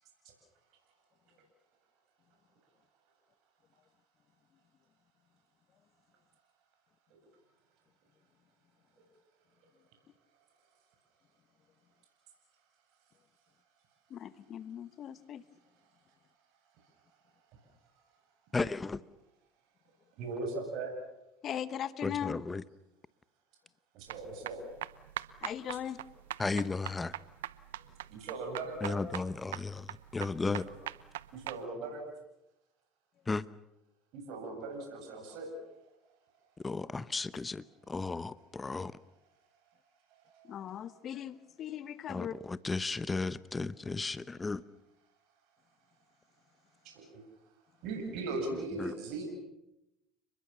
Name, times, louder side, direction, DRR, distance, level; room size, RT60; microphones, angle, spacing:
voice 1, 14.1-15.4 21.4-22.4 25.4-26.0 40.4-42.3, left 10 dB, 50° left, 1.1 m, -39 dB
voice 2, 18.5-19.0 22.0-22.6 26.4-27.1 28.8-30.7 33.3-33.5 36.6-38.9 42.1-44.6 48.5-48.9, left 3 dB, 20° left, 1.0 m, -35 dB
voice 3, 20.2-20.9 23.9-24.6 28.1-29.0 31.3-32.0 34.1-35.7 40.1-40.6 46.8-47.2 47.8-49.3, right 3 dB, 65° right, 7.9 m, -39 dB
sound 1, 24.1-31.6, right 14 dB, 90° right, 0.9 m, -42 dB
30.0 x 21.5 x 7.1 m
hypercardioid pair, 80°, 0 cm